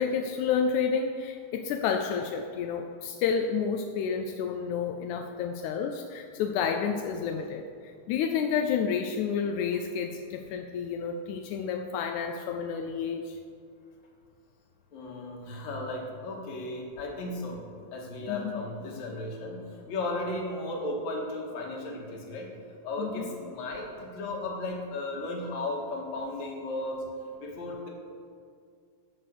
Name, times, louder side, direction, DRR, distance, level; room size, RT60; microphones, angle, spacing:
voice 1, 0.0-13.4 18.3-18.6 23.0-23.4, left 6 dB, 80° left, 4 dB, 1.8 m, -30 dB
voice 2, 14.9-17.6 17.9-22.5 22.8-27.0 27.4-27.9, left 2 dB, 60° left, 0 dB, 2.7 m, -35 dB
13.5 x 6.0 x 6.5 m, 2.3 s
omnidirectional pair, 3.9 m